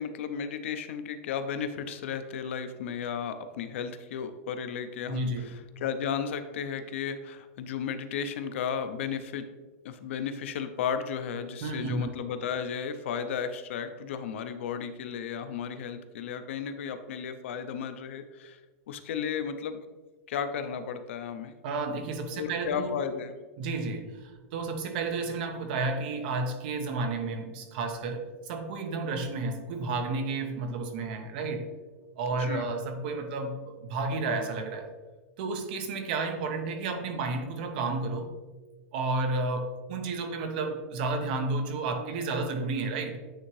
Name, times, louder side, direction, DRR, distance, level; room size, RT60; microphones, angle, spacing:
voice 1, 0.0-9.5 9.8-18.6 18.9-19.8 20.3-21.5 22.4-23.4 32.4-32.6, left 7 dB, 60° left, 9 dB, 0.5 m, -34 dB
voice 2, 5.1-5.6 11.6-12.1 21.6-23.0 23.6-31.7 32.2-34.9 35.4-38.3 38.9-43.2, right 3 dB, 45° right, 6 dB, 0.8 m, -32 dB
9.0 x 3.6 x 3.1 m, 1.2 s
supercardioid pair, 175°, 7 cm